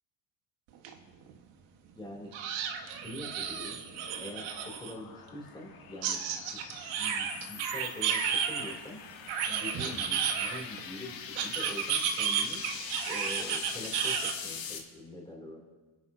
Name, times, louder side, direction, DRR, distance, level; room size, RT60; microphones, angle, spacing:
sound 1, 0.8-0.9 1.3-1.4 2.3-4.9 6.0-8.7 9.3-10.8 11.4-14.3, right 7 dB, 75° right, 1.6 m, -32 dB
voice 1, 2.0-2.3 2.7-3.8 4.2-6.7 7.0-9.0 9.5-12.6 13.1-15.6, left 1 dB, 10° left, -2 dB, 3.1 m, -44 dB
sound 2, 3.3-14.8, left 7 dB, 45° left, 1.7 m, -44 dB
28.5 x 10.5 x 2.8 m, 1.3 s
cardioid pair, 160°, 47 cm